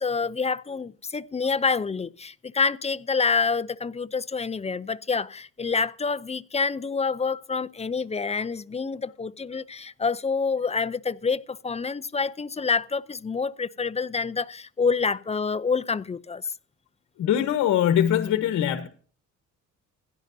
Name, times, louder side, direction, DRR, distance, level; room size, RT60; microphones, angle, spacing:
voice 1, 0.0-16.4, left 5 dB, 20° left, 0.5 m, -27 dB
voice 2, 17.2-18.9, left 10 dB, 75° left, 1.2 m, -22 dB
16.0 x 11.0 x 2.7 m
cardioid pair, 90°, 30 cm